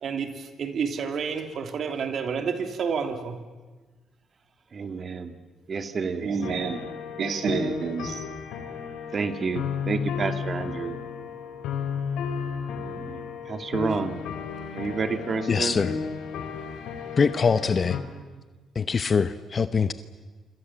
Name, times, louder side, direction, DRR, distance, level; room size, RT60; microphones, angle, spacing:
voice 1, 0.0-3.4 6.2-6.8 7.2-8.3, right 6 dB, 60° right, 7 dB, 3.1 m, -29 dB
voice 2, 4.7-5.3 5.7-6.4 9.1-11.0 12.8-14.2 14.7-15.8, right 4 dB, 40° right, 9 dB, 2.2 m, -30 dB
sound 1, 6.4-18.0, left 6 dB, 90° left, 3.7 m, -33 dB
voice 3, 15.5-15.9 17.2-18.0 18.7-19.9, left 5 dB, 40° left, 12 dB, 1.0 m, -23 dB
27.0 x 25.5 x 7.6 m, 1.3 s
cardioid pair, 90°, 0 cm